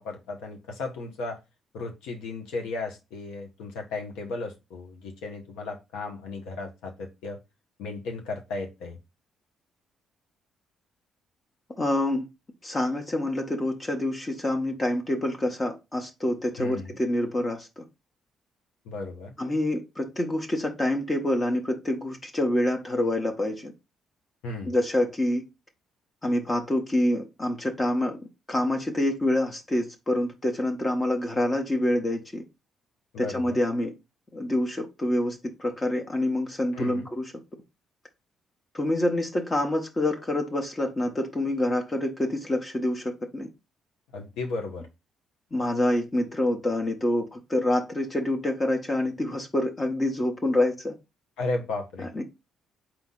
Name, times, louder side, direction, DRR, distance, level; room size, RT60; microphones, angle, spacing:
voice 1, 0.0-1.4 1.7-7.4 7.8-9.0 16.6-16.9 18.8-19.3 24.4-24.7 33.1-33.6 36.7-37.1 44.1-44.9 51.4-52.2, left 3 dB, 85° left, 0.9 m, -35 dB
voice 2, 11.8-12.3 12.6-17.8 19.4-23.7 24.7-25.4 26.2-28.2 28.5-32.4 33.2-33.9 34.3-37.3 38.7-43.5 45.5-50.9 52.1-52.2, left 1 dB, 30° left, 0.9 m, -26 dB
3.9 x 2.9 x 3.7 m
supercardioid pair, 60°, 0 cm